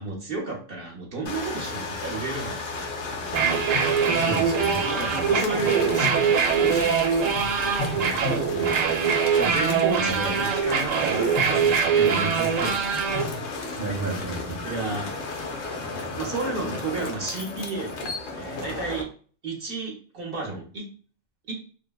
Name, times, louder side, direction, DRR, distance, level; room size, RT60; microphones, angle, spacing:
voice 1, 0.0-2.9 4.8-7.6 7.9-8.4 9.3-12.8 13.1-13.3 14.6-15.1 16.2-19.1 19.4-20.9 21.5-21.6, right 3 dB, 50° right, -1 dB, 0.9 m, -32 dB
sound 1, 1.3-19.0, left 3 dB, 80° left, 1.0 m, -35 dB
sound 2, 2.7-3.1 3.7-4.9 5.6-7.0 7.4-9.7 10.2-10.5 11.2-12.3 13.1-13.5, left 3 dB, 25° left, 0.6 m, -37 dB
sound 3, 3.2-13.2, right 6 dB, 85° right, 0.9 m, -23 dB
voice 2, 4.1-4.8 5.1-5.3 8.5-8.7 10.0-10.1 13.8-14.6 15.9-16.2, right 3 dB, 25° right, -1 dB, 0.5 m, -32 dB
3.3 x 2.1 x 2.2 m, 0.41 s
omnidirectional pair, 1.3 m